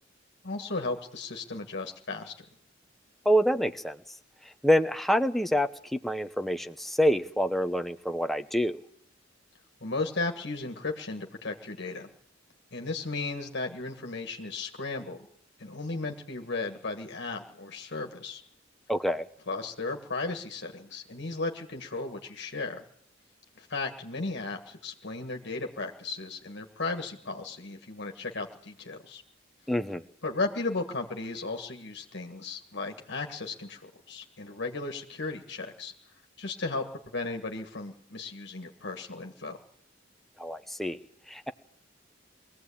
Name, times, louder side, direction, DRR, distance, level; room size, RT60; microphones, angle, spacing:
voice 1, 0.4-2.5 9.8-12.1 12.7-15.2 15.6-18.4 19.5-22.8 23.6-29.2 30.2-35.9 36.4-36.8 37.1-39.6, left 3 dB, 65° left, 4 dB, 1.8 m, -35 dB
voice 2, 3.2-4.0 4.6-8.8 18.9-19.3 29.7-30.0 40.4-41.0 41.3-41.5, equal, ahead, 8 dB, 0.9 m, -26 dB
22.5 x 16.0 x 8.6 m, 0.67 s
head